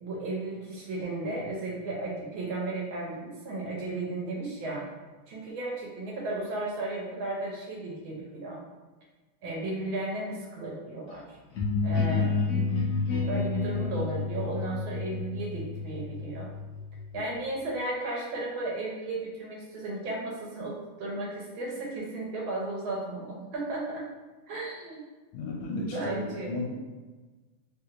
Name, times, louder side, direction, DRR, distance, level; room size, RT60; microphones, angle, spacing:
voice 1, 0.0-4.8 5.3-8.6 9.4-11.4 11.8-12.4 13.3-16.5 17.1-24.1 24.5-25.0 25.6-26.5, right 2 dB, 75° right, -3 dB, 1.5 m, -34 dB
sound 1, 11.5-17.2, left 4 dB, 65° left, 0.7 m, -29 dB
voice 2, 25.3-26.2 26.5-26.7, left 2 dB, 85° left, 0 dB, 1.4 m, -33 dB
3.5 x 2.8 x 2.4 m, 1.3 s
omnidirectional pair, 2.3 m